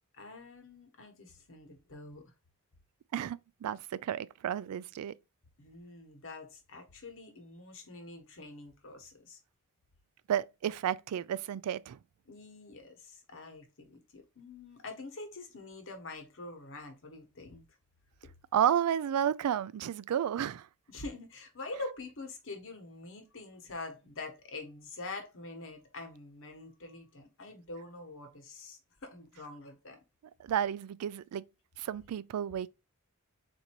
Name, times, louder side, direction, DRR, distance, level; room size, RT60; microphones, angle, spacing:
voice 1, 0.1-2.2 5.6-9.4 12.3-17.6 20.9-30.0, left 2 dB, 60° left, 1.2 m, -45 dB
voice 2, 3.1-5.1 10.3-12.0 18.5-20.7 30.4-31.4 31.8-32.7, right 9 dB, 80° right, 0.3 m, -32 dB
4.0 x 2.7 x 4.4 m
head